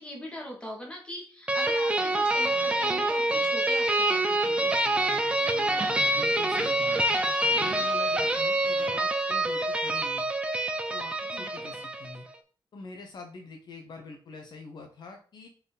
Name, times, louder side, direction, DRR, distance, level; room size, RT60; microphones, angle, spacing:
voice 1, 0.0-4.8 11.3-11.6, left 1 dB, 10° left, -1 dB, 2.3 m, -41 dB
sound 1, 1.5-12.2, right 1 dB, 15° right, 0.8 m, -26 dB
voice 2, 5.5-7.0 7.5-10.3 10.9-12.3 12.7-15.5, left 3 dB, 60° left, 3 dB, 1.2 m, -44 dB
5.0 x 4.3 x 5.3 m, 0.39 s
wide cardioid pair, 145°, 8 cm